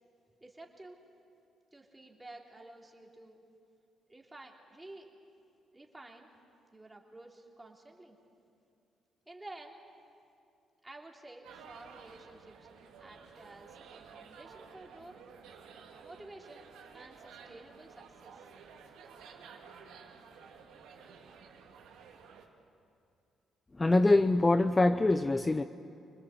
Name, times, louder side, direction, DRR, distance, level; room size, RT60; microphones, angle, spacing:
voice 1, 0.4-1.0 1.7-3.4 4.1-5.1 5.7-6.3 6.7-8.2 9.3-9.8 10.8-12.7 13.0-15.2 16.0-18.5, right 2 dB, 15° right, 0 dB, 3.2 m, -52 dB
sound 1, 11.4-22.5, right 6 dB, 90° right, 2.4 m, -53 dB
voice 2, 23.8-25.6, left 2 dB, 20° left, 10 dB, 0.6 m, -24 dB
26.0 x 20.0 x 8.0 m, 2.6 s
cardioid pair, 90°, 0 cm